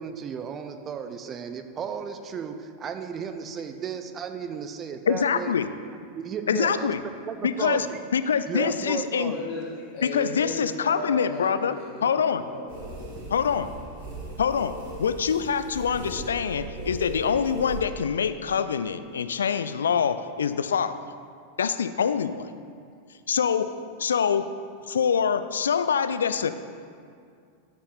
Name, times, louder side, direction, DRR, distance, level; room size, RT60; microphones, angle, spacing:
voice 1, 0.0-5.5 6.2-6.9 7.3-8.0 8.5-9.4, right 7 dB, 25° right, 7 dB, 0.6 m, -34 dB
voice 2, 5.1-5.7 6.5-7.0 7.4-7.9 8.1-9.3 10.0-11.8 12.0-12.4 13.3-13.7 14.4-21.0 21.6-22.5 23.3-24.5 24.9-26.5, left 7 dB, 65° left, 12 dB, 0.4 m, -25 dB
voice 3, 9.2-13.0, left 2 dB, 40° left, -3 dB, 1.9 m, -36 dB
sound 1, 12.7-17.8, right 2 dB, 55° right, 2.2 m, -38 dB
12.5 x 5.5 x 4.1 m, 2.3 s
figure-of-eight pair, 90°, 0 cm